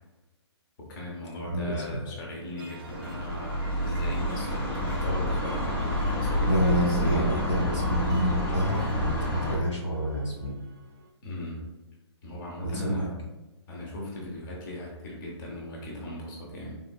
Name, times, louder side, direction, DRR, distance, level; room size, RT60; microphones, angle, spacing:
voice 1, 0.8-7.7 11.2-11.6 12.2-13.1 13.7-16.8, left 1 dB, 45° left, -3 dB, 0.9 m, -38 dB
voice 2, 1.4-2.0 6.4-10.5 12.6-13.1, equal, 85° left, -3 dB, 1.3 m, -28 dB
sound 1, 2.6-11.1, right 3 dB, 50° right, 0.5 m, -45 dB
sound 2, 2.9-9.6, equal, 10° left, 0.5 m, -29 dB
3.7 x 2.5 x 2.3 m, 1.1 s
figure-of-eight pair, 135°, 15 cm